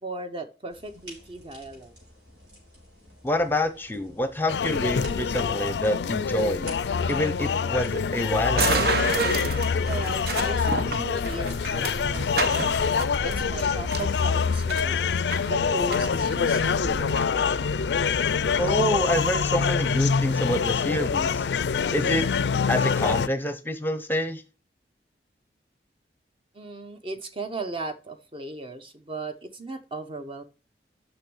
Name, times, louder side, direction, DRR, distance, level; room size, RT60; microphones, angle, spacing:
voice 1, 0.0-1.9 9.9-12.7 13.2-15.0 15.4-17.4 26.5-30.4, right 2 dB, 30° right, 0.8 m, -37 dB
sound 1, 0.7-19.1, equal, 85° right, 5.7 m, -51 dB
voice 2, 3.2-6.7 7.1-8.9 18.6-21.4 21.9-22.3 22.7-24.4, left 1 dB, 10° left, 0.7 m, -27 dB
sound 2, 4.5-23.3, left 6 dB, 80° left, 0.4 m, -25 dB
sound 3, 8.5-17.2, right 4 dB, 60° right, 0.9 m, -31 dB
6.4 x 6.2 x 6.2 m
head